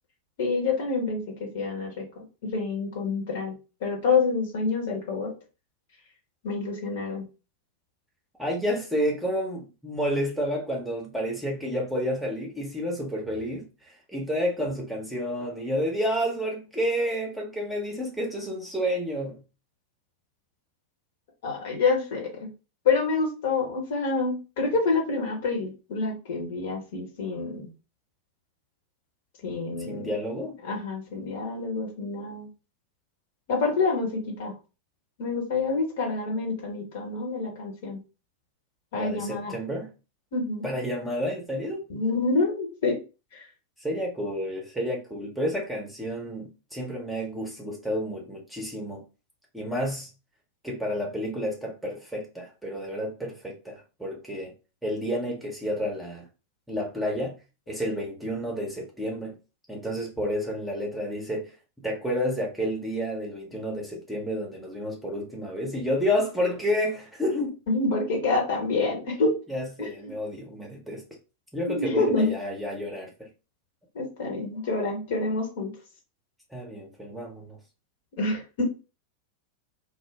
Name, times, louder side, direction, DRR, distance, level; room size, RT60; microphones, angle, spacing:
voice 1, 0.4-2.0 2.5-3.5 3.8-5.3 6.4-7.2 21.4-22.5 22.8-27.7 29.4-30.1 30.6-32.5 33.5-34.5 35.2-38.0 38.9-39.5 40.3-40.6 41.9-43.0 43.3-43.5 67.7-69.4 69.8-70.1 71.7-72.3 73.9-75.7 78.1-78.6, left 3 dB, 55° left, 1.0 m, -27 dB
voice 2, 8.4-19.4 29.9-30.6 38.9-39.9 40.6-41.8 43.8-49.0 49.5-50.1 50.6-54.5 54.8-56.3 56.7-57.4 57.7-59.3 59.7-61.5 61.8-67.6 69.5-71.0 71.5-73.3 76.5-77.6, equal, 5° right, 0.9 m, -30 dB
2.5 x 2.1 x 3.3 m
figure-of-eight pair, 90°, 0 cm